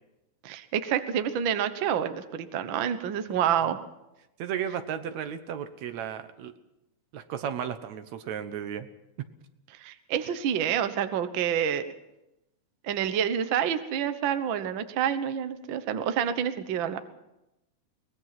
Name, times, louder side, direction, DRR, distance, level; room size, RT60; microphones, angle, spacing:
voice 1, 0.4-3.8 9.8-11.9 12.8-17.0, right 9 dB, 55° right, 10 dB, 1.5 m, -28 dB
voice 2, 4.4-6.5 7.1-8.9, right 8 dB, 75° right, 10 dB, 2.3 m, -34 dB
23.0 x 20.0 x 5.9 m, 0.91 s
omnidirectional pair, 3.3 m